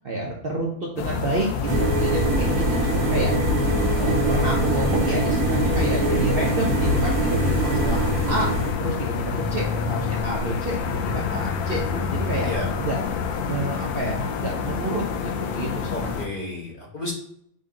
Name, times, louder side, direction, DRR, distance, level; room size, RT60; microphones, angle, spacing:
voice 1, 0.0-3.3 4.0-8.5 8.8-12.5 12.8-13.0 13.4-16.1, right 2 dB, 50° right, -1 dB, 0.7 m, -29 dB
sound 1, 1.0-16.3, left 6 dB, 85° left, 1.1 m, -28 dB
sound 2, 1.7-8.7, right 2 dB, 75° right, 1.2 m, -23 dB
voice 2, 15.9-17.1, left 1 dB, 40° left, -3 dB, 1.2 m, -32 dB
5.3 x 2.8 x 3.7 m, 0.70 s
omnidirectional pair, 1.5 m